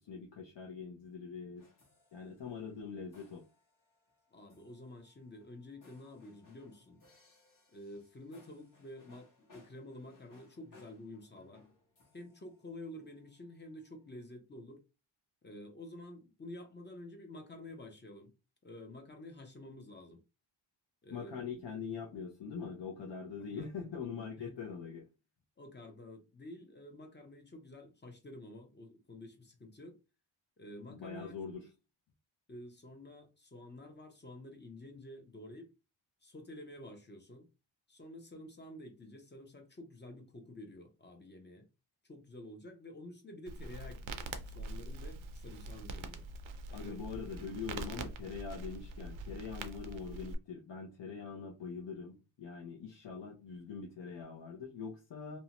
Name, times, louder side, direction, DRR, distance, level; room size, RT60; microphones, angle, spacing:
voice 1, 0.0-1.6 2.1-3.4 21.1-25.1 30.9-31.7 46.7-55.4, left 5 dB, 60° left, 0.7 m, -43 dB
sound 1, 1.6-13.4, left 3 dB, 40° left, 1.1 m, -65 dB
voice 2, 4.3-7.0 7.7-11.6 12.1-14.8 15.4-18.3 18.6-20.2 21.0-21.4 23.4-23.7 23.9-24.6 25.6-30.0 30.6-31.7 32.5-35.7 36.2-37.5 37.9-41.7 42.0-46.3 46.7-47.0, left 1 dB, 20° left, 0.5 m, -50 dB
Crackle, 43.5-50.3, right 2 dB, 70° right, 0.5 m, -44 dB
2.6 x 2.1 x 2.8 m
wide cardioid pair, 130°, 49 cm